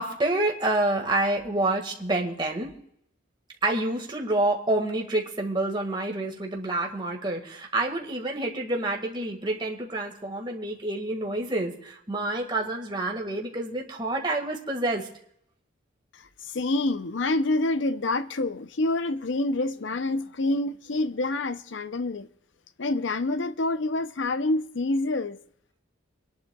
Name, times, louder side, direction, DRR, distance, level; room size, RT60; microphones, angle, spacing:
voice 1, 0.0-2.7 3.6-15.1, right 2 dB, 25° right, 1.9 m, -28 dB
voice 2, 16.1-22.3 22.8-25.4, left 2 dB, 70° left, 0.7 m, -27 dB
28.0 x 11.0 x 2.4 m
head